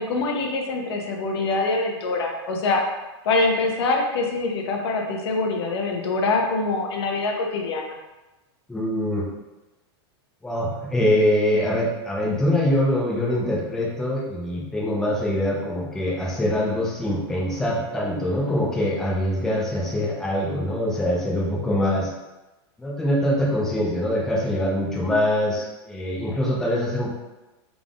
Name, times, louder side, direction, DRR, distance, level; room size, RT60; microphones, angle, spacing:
voice 1, 0.0-2.8 3.3-7.8, left 3 dB, 75° left, 1 dB, 0.8 m, -24 dB
voice 2, 8.7-9.3 10.4-22.1 22.8-27.1, left 1 dB, 5° left, -4 dB, 0.4 m, -24 dB
3.7 x 3.5 x 2.4 m, 1.1 s
supercardioid pair, 160°, 14 cm